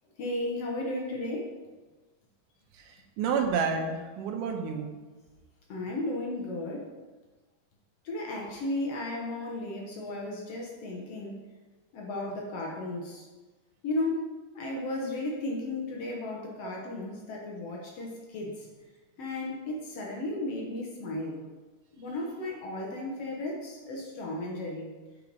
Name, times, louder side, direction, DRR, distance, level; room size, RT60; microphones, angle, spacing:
voice 1, 0.2-1.5 5.7-6.9 8.0-11.4 11.9-13.3 13.8-14.3 14.6-18.7 19.2-21.4 22.0-24.9, left 2 dB, 60° left, -1 dB, 1.8 m, -34 dB
voice 2, 2.7-4.9 16.6-16.7, right 5 dB, 85° right, 3 dB, 2.5 m, -30 dB
8.0 x 5.6 x 4.7 m, 1.3 s
omnidirectional pair, 3.6 m